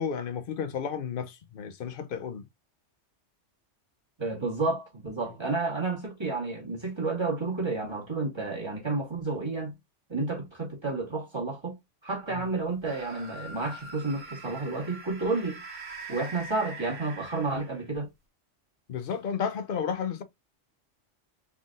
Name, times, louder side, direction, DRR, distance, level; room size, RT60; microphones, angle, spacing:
voice 1, 0.0-2.5 12.3-12.4 18.9-20.2, left 7 dB, 55° left, 0.7 m, -32 dB
voice 2, 4.2-9.7 10.1-11.8 12.0-15.6 16.1-18.1, right 3 dB, 20° right, 1.7 m, -31 dB
sound 1, 12.8-18.0, right 2 dB, 80° right, 1.5 m, -43 dB
3.9 x 3.7 x 2.5 m
omnidirectional pair, 1.2 m